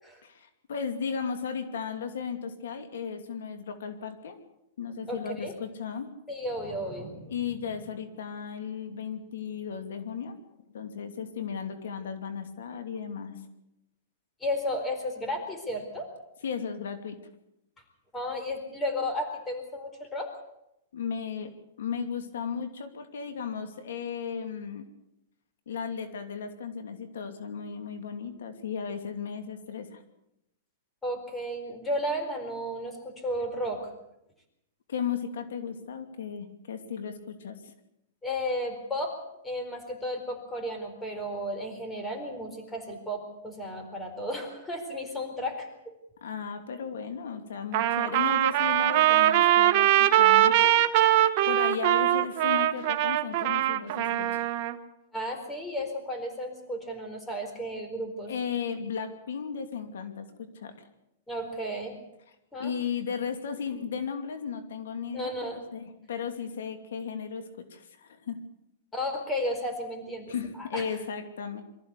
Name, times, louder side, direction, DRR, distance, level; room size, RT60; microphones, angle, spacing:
voice 1, 0.2-4.4 4.8-6.1 7.3-10.4 10.7-13.5 16.4-17.2 20.9-21.5 21.8-24.8 25.7-30.0 34.9-37.6 46.2-50.7 51.5-54.5 58.3-60.9 62.6-68.4 70.3-71.6, left 6 dB, 85° left, 8 dB, 2.7 m, -35 dB
voice 2, 5.1-5.5 6.3-7.3 14.4-16.1 18.1-20.3 31.0-33.8 38.2-39.2 39.4-45.7 55.1-58.3 61.3-62.0 62.5-62.7 65.1-65.6 68.9-70.8, equal, 10° left, 4 dB, 4.3 m, -33 dB
Trumpet, 47.7-54.7, right 13 dB, 45° right, 1.5 m, -22 dB
23.5 x 14.5 x 8.4 m, 0.84 s
hypercardioid pair, 150°, 0 cm